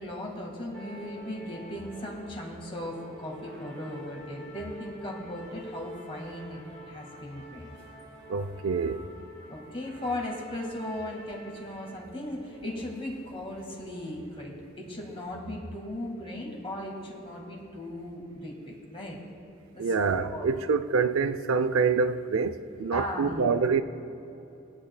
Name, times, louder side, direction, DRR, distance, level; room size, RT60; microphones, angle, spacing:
voice 1, 0.0-7.7 9.5-19.2 19.7-19.9 20.2-20.5 22.9-23.5, left 1 dB, 25° left, 1.8 m, -37 dB
sound 1, 0.7-15.3, equal, 10° left, 2.8 m, -48 dB
voice 2, 8.3-9.0 19.8-23.8, right 5 dB, 75° right, 0.5 m, -26 dB
24.0 x 8.9 x 2.2 m
head